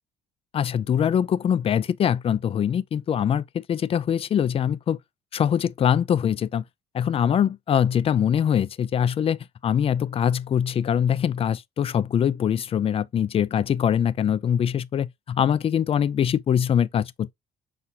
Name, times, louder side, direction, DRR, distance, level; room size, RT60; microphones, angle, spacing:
voice 1, 0.5-5.0 5.3-6.6 6.9-17.3, left 8 dB, 35° left, 0.4 m, -23 dB
5.8 x 2.4 x 2.6 m
cardioid pair, 110°, 17 cm